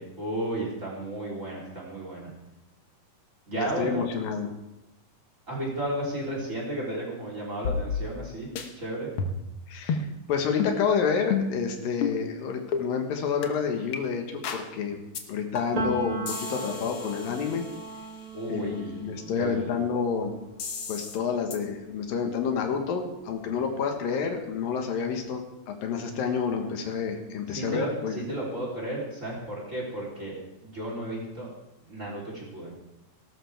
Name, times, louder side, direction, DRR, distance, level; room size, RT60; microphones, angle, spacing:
voice 1, 0.0-2.3 3.5-4.1 5.5-9.1 18.3-19.8 27.5-31.5 31.8-32.7, right 1 dB, 20° right, -3 dB, 3.6 m, -33 dB
voice 2, 3.5-4.5 9.7-15.0 15.3-17.6 18.5-20.3 20.9-28.2, left 6 dB, 85° left, 4 dB, 3.1 m, -29 dB
sound 1, 7.6-8.3 8.6-8.7 9.2-9.5 9.9-10.1 10.6-10.8 11.3-11.6 12.0-12.2 12.7-12.9 13.4-13.5 13.9-14.0 14.4-14.7 15.1-15.2 15.5-15.9 16.3-18.1 20.6-21.2 21.5-21.6, left 5 dB, 65° left, 1.4 m, -31 dB
Piano, 15.8-23.4 23.7-25.3, right 3 dB, 60° right, 0.9 m, -39 dB
18.5 x 12.5 x 3.5 m, 0.92 s
omnidirectional pair, 3.9 m